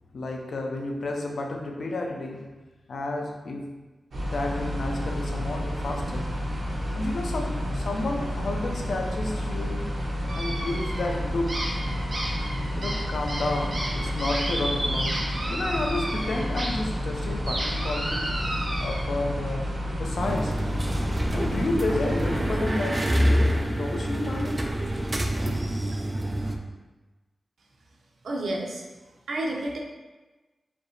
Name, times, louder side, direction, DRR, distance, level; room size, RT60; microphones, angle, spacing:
voice 1, 0.1-2.5 2.9-3.7 4.2-6.3 6.9-9.8 10.4-11.7 12.7-15.2 15.5-18.3 18.8-19.7 20.0-20.6 21.3-24.6 25.5-25.6, left 2 dB, 70° left, 2 dB, 0.5 m, -31 dB
sound 1, 4.1-22.5, equal, 70° right, 1.2 m, -30 dB
sound 2, 10.3-11.1 11.5-16.7 17.0-19.0, right 1 dB, 40° right, 0.8 m, -32 dB
sound 3, 20.2-26.6, equal, 20° right, 0.4 m, -27 dB
voice 2, 28.2-28.8 29.3-29.8, right 1 dB, 90° right, 0 dB, 0.7 m, -30 dB
5.1 x 2.8 x 3.1 m, 1.2 s
wide cardioid pair, 155°, 0 cm